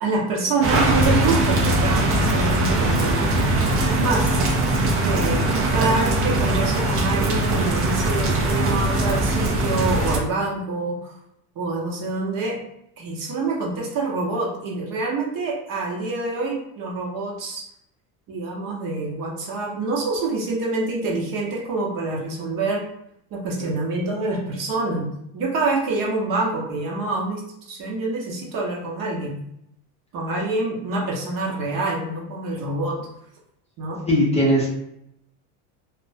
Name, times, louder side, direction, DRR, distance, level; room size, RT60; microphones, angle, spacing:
voice 1, 0.0-4.4 5.0-11.1 11.6-12.6 13.0-17.6 18.3-22.9 23.3-29.4 30.1-33.0 33.8-34.0, right 3 dB, 50° right, -2 dB, 0.8 m, -26 dB
sound 1, 0.6-10.2, right 1 dB, 35° right, 0.5 m, -21 dB
voice 2, 34.1-34.7, equal, 15° left, -5 dB, 0.6 m, -19 dB
2.4 x 2.1 x 2.5 m, 0.76 s
supercardioid pair, 115°, 43 cm